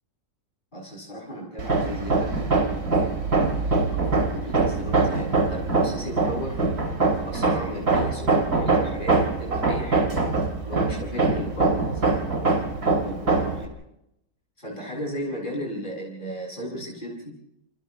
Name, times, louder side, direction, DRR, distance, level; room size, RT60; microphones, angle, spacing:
voice 1, 0.7-3.1 3.9-6.6 7.3-10.3 10.7-12.2 13.0-13.8 14.6-17.3, equal, 25° left, -3 dB, 7.5 m, -35 dB
Hammer, 1.6-13.7, right 3 dB, 60° right, 3.1 m, -23 dB
30.0 x 28.5 x 3.3 m, 0.82 s
omnidirectional pair, 1.9 m